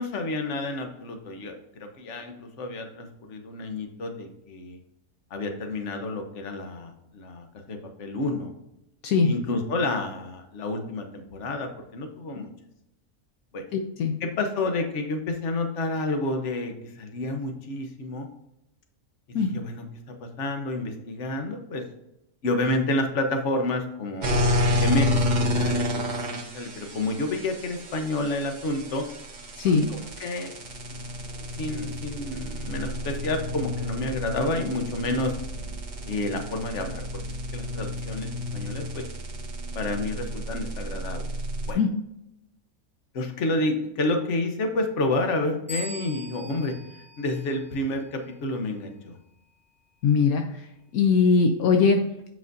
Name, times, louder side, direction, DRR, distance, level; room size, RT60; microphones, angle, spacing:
voice 1, 0.0-4.8 5.3-8.5 9.2-12.5 13.5-13.6 14.2-18.3 19.3-19.8 20.2-21.8 22.4-24.3 24.8-29.0 29.6-30.5 30.9-31.1 31.6-35.4 36.1-37.0 37.5-39.0 39.7-41.3 41.7-41.8 43.1-49.1, left 2 dB, 55° left, 5 dB, 1.3 m, -30 dB
voice 2, 13.7-14.1 19.3-19.5 29.6-29.9 41.8-41.9 50.0-50.4 50.9-52.0, left 5 dB, 75° left, 4 dB, 1.1 m, -20 dB
sound 1, 24.2-41.7, left 1 dB, 35° right, 1.1 m, -30 dB
sound 2, 45.7-48.2, left 1 dB, 15° right, 2.0 m, -41 dB
7.9 x 5.7 x 2.6 m, 0.85 s
omnidirectional pair, 1.6 m